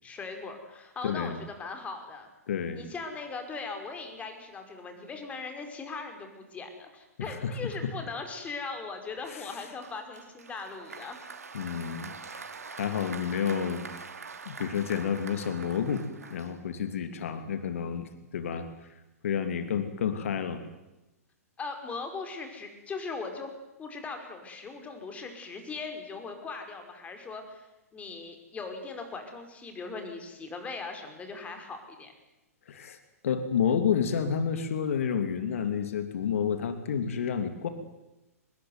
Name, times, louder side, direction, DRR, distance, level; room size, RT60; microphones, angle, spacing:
voice 1, 0.0-2.3 2.7-11.2 21.6-23.5 23.8-27.7 27.9-32.1, left 4 dB, 15° left, 6 dB, 5.4 m, -39 dB
voice 2, 1.0-1.4 2.5-2.8 7.2-7.9 9.3-9.5 11.5-12.5 12.7-14.1 14.5-18.7 19.2-20.6 32.7-33.0 33.2-37.7, left 7 dB, 60° left, 9 dB, 2.8 m, -30 dB
Applause, 9.8-16.9, right 5 dB, 75° right, 3.0 m, -44 dB
25.0 x 21.0 x 9.7 m, 0.99 s
figure-of-eight pair, 115°, 8 cm